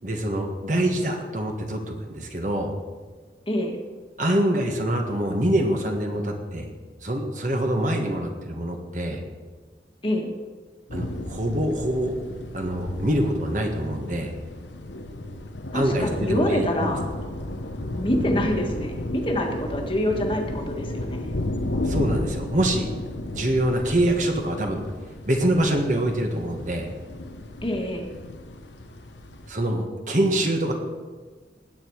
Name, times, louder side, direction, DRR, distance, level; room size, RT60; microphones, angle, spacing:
voice 1, 0.0-2.7 4.2-6.7 7.0-9.2 10.9-12.1 12.5-14.3 15.7-16.9 21.8-24.8 25.2-26.9 29.5-30.7, right 1 dB, 45° right, 3 dB, 1.6 m, -25 dB
voice 2, 3.5-3.8 10.0-10.3 15.7-17.0 17.9-21.3 27.6-28.1, left 1 dB, 30° left, 1 dB, 1.6 m, -26 dB
sound 1, 10.9-29.5, left 1 dB, 90° left, 1.1 m, -33 dB
19.0 x 8.8 x 4.7 m, 1.4 s
head